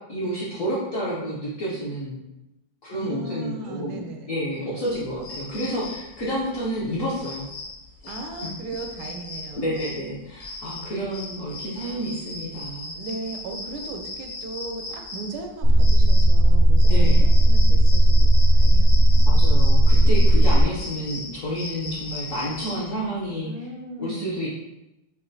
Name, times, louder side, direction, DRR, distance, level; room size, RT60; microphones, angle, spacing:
voice 1, 0.1-2.2 2.8-7.5 8.0-8.1 9.5-12.9 16.9-17.2 19.3-23.5 24.0-24.5, equal, 60° left, -7 dB, 0.8 m, -30 dB
voice 2, 2.9-4.3 8.1-10.0 12.9-19.5 23.4-24.4, right 2 dB, 85° right, 4 dB, 1.4 m, -37 dB
sound 1, 4.8-23.1, left 2 dB, 85° left, 1.7 m, -38 dB
sound 2, 15.6-20.6, equal, 65° right, 0.8 m, -14 dB
6.2 x 2.1 x 2.6 m, 0.91 s
omnidirectional pair, 2.2 m